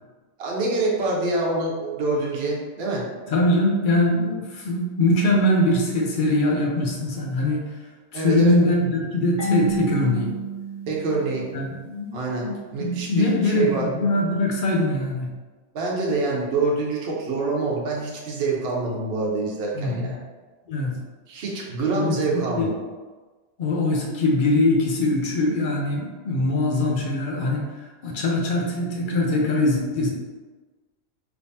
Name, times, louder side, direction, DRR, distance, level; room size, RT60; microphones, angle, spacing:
voice 1, 0.4-3.0 8.1-8.5 10.9-11.5 12.1-13.9 15.7-20.2 21.3-22.7, right 3 dB, 65° right, -3 dB, 0.9 m, -26 dB
voice 2, 3.3-7.7 8.1-10.4 11.5-15.3 19.7-20.2 20.7-21.0 21.9-22.8 23.6-30.1, left 1 dB, 55° left, -1 dB, 0.7 m, -22 dB
Marimba xylophone / Wood, 9.4-12.1, right 3 dB, 75° left, 1.2 m, -30 dB
3.4 x 2.9 x 2.7 m, 1.3 s
omnidirectional pair, 1.2 m